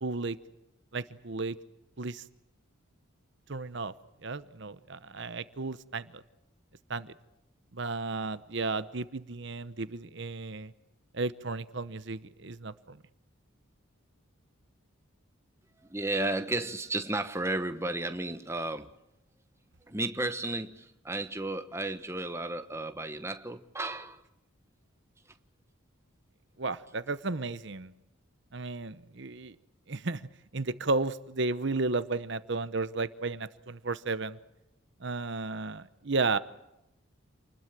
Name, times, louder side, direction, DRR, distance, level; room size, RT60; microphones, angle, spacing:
voice 1, 0.0-0.4 0.9-1.6 2.0-2.2 3.5-3.9 4.2-6.2 6.9-7.1 7.7-10.7 11.1-13.0 26.6-27.9 28.5-29.5 29.9-30.2 30.5-34.4 35.0-36.4, right 3 dB, 55° right, 0.9 m, -33 dB
voice 2, 15.9-18.9 19.9-24.2, right 2 dB, 15° right, 1.2 m, -33 dB
28.0 x 20.5 x 7.5 m
head